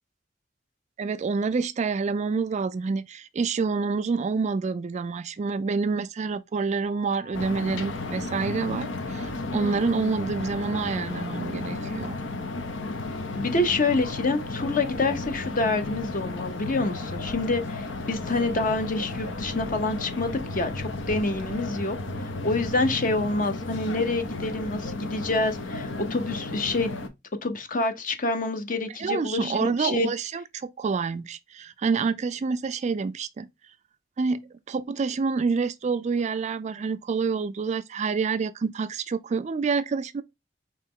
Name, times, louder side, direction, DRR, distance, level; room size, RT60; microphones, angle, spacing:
voice 1, 1.0-12.2 29.0-33.5 34.2-34.4 34.7-40.2, right 4 dB, 40° right, 0.3 m, -27 dB
sound 1, 6.8-16.8, left 6 dB, 10° left, 0.8 m, -48 dB
sound 2, 7.3-27.1, left 2 dB, 85° left, 0.8 m, -33 dB
voice 2, 13.3-26.9 27.4-30.1, left 3 dB, 45° left, 0.8 m, -27 dB
4.4 x 3.0 x 3.6 m
head